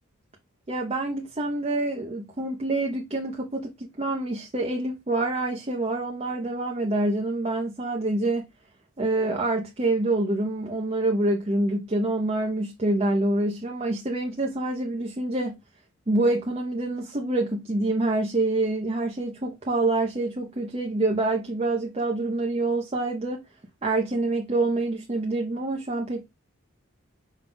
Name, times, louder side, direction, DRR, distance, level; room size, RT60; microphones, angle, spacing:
voice 1, 0.7-8.5 9.0-15.6 16.1-23.4 23.8-26.3, right 2 dB, 30° right, 0.7 m, -26 dB
5.4 x 2.3 x 3.8 m
head